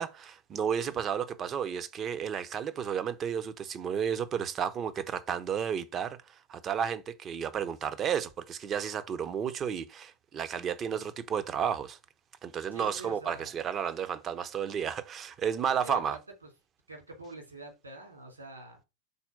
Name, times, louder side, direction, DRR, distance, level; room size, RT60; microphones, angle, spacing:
voice 1, 0.0-12.0 12.4-16.2, right 8 dB, 25° right, 0.8 m, -32 dB
voice 2, 12.7-13.5 15.8-16.2 16.9-18.8, right 2 dB, 80° right, 3.4 m, -45 dB
5.5 x 4.3 x 5.8 m
figure-of-eight pair, 90°, 0 cm